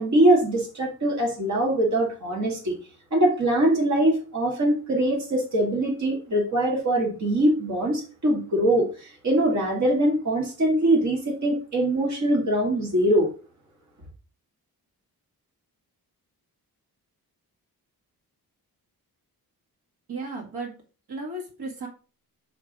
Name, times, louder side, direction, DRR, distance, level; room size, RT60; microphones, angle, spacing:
voice 1, 0.0-2.8 3.1-13.3, right 1 dB, 50° right, 2.0 m, -22 dB
voice 2, 20.1-20.8 21.1-21.9, right 2 dB, 80° right, 2.2 m, -34 dB
4.7 x 4.6 x 6.0 m
wide cardioid pair, 170°, 37 cm